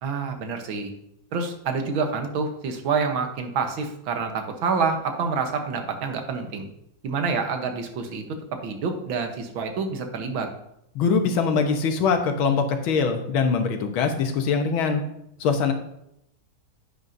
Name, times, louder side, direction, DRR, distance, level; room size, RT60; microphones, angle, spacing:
voice 1, 0.0-0.9 1.3-6.7 7.0-8.2 8.6-10.5, right 5 dB, 80° right, 5 dB, 1.9 m, -27 dB
voice 2, 11.0-15.0 15.4-15.7, left 5 dB, 85° left, 5 dB, 1.9 m, -22 dB
10.0 x 8.8 x 2.7 m, 0.78 s
omnidirectional pair, 2.2 m